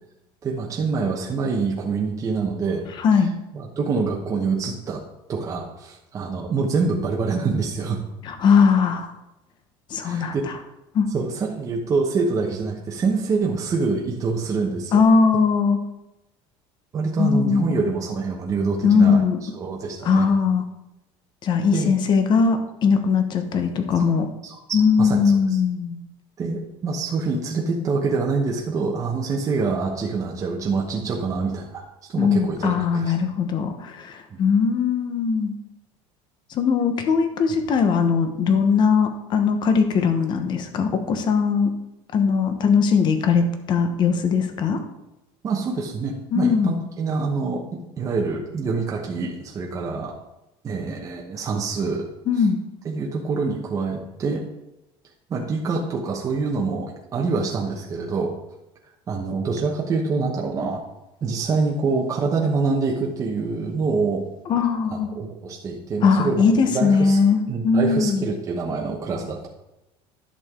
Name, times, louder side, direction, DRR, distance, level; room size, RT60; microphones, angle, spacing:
voice 1, 0.4-2.9 3.5-5.0 5.3-8.0 10.0-10.4 11.1-15.0 16.9-19.2 19.5-20.3 21.7-21.9 24.0-24.1 24.4-25.2 25.5-25.6 26.4-31.8 32.1-33.1 34.3-34.4 45.4-50.2 50.6-52.1 52.8-54.4 55.3-58.3 59.1-60.8 61.2-64.3 64.9-67.2 67.5-69.5, right 4 dB, 25° right, -1 dB, 1.0 m, -25 dB
voice 2, 3.0-3.3 8.2-9.1 9.9-10.6 10.9-11.1 14.9-15.8 17.2-17.7 18.8-19.4 20.0-20.6 21.4-24.3 24.7-26.0 32.2-35.5 36.5-41.7 42.1-44.8 46.3-46.8 52.3-52.6 64.5-65.1 66.0-68.2, left 5 dB, 40° left, 8 dB, 1.1 m, -20 dB
11.0 x 6.5 x 3.7 m, 0.92 s
cardioid pair, 150°, 12 cm